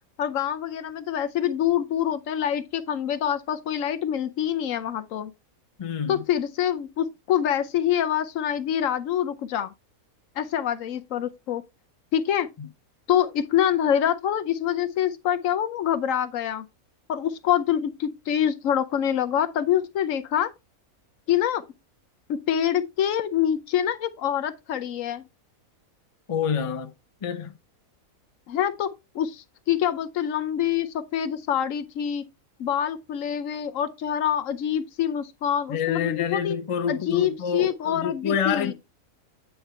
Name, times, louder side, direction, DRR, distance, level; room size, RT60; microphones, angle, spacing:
voice 1, 0.2-5.3 6.1-9.7 10.4-11.6 12.1-12.5 13.1-16.7 17.1-20.5 21.3-21.6 22.3-25.2 28.5-28.9 29.1-32.3 32.6-36.5 36.9-38.7, left 10 dB, 70° left, 1.0 m, -25 dB
voice 2, 5.8-6.2 12.6-12.7 26.3-26.9 27.2-27.5 35.7-38.7, left 7 dB, 35° left, 0.5 m, -27 dB
8.9 x 4.6 x 3.1 m
omnidirectional pair, 1.5 m